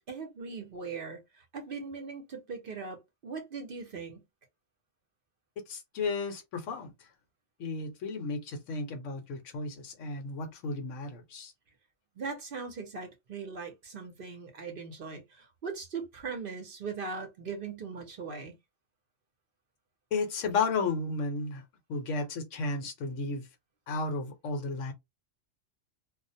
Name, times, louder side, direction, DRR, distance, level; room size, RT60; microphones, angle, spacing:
voice 1, 0.1-4.2 12.2-18.6, right 5 dB, 55° right, 0.7 m, -40 dB
voice 2, 5.7-6.9 7.6-11.5 20.1-21.6 21.9-23.4 23.9-24.9, left 4 dB, 80° left, 1.1 m, -33 dB
2.4 x 2.0 x 2.6 m
omnidirectional pair, 1.3 m